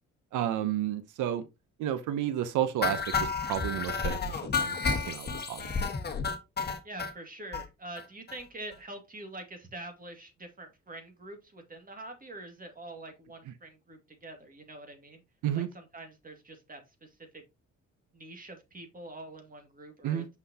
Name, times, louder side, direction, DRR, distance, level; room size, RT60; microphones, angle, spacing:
voice 1, 0.3-1.4 1.8-4.8 5.1-5.7 15.4-15.7 20.0-20.3, right 11 dB, 85° right, 0.8 m, -31 dB
sound 1, 2.8-7.1 7.5-7.6 8.0-8.1 8.3-8.4 8.7-8.8, left 4 dB, 35° left, 1.4 m, -31 dB
voice 2, 6.8-15.2 15.5-17.4 18.1-20.3, right 2 dB, 30° right, 2.1 m, -45 dB
5.9 x 5.7 x 2.8 m
cardioid pair, 90°, 30 cm